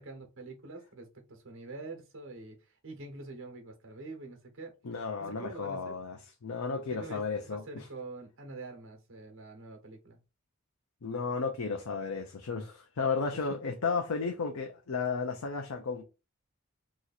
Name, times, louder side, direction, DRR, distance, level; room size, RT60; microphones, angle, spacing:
voice 1, 0.0-4.7 5.2-5.9 6.9-10.2 13.3-13.4, right 3 dB, 65° right, 1.1 m, -45 dB
voice 2, 4.8-7.9 11.0-16.0, left 4 dB, 85° left, 0.6 m, -33 dB
3.0 x 2.5 x 4.0 m
head